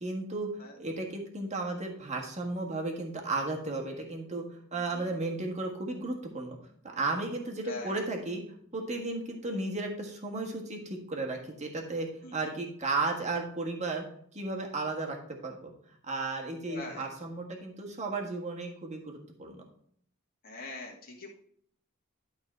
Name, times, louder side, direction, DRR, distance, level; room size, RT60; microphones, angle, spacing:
voice 1, 0.0-0.5 0.8-6.6 6.9-8.4 8.7-14.0 14.3-15.2 15.4-15.7 16.0-19.6, right 3 dB, 35° right, 1 dB, 1.6 m, -34 dB
voice 2, 7.6-8.0 12.2-12.3 16.7-17.0 20.4-21.3, left 2 dB, 45° left, -2 dB, 2.1 m, -42 dB
11.5 x 4.0 x 4.3 m, 0.65 s
head